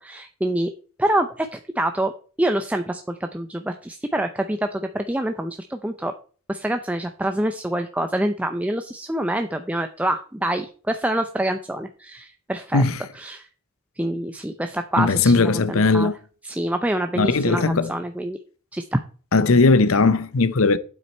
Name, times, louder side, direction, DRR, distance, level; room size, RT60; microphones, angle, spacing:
voice 1, 0.0-0.7 1.0-2.1 2.4-6.1 6.5-12.8 13.1-13.5 14.0-16.1 16.4-18.4 18.7-19.0, right 1 dB, 5° right, 0.5 m, -26 dB
voice 2, 15.0-16.1 17.2-17.9 19.3-20.8, left 3 dB, 65° left, 0.7 m, -18 dB
9.2 x 7.6 x 4.3 m
head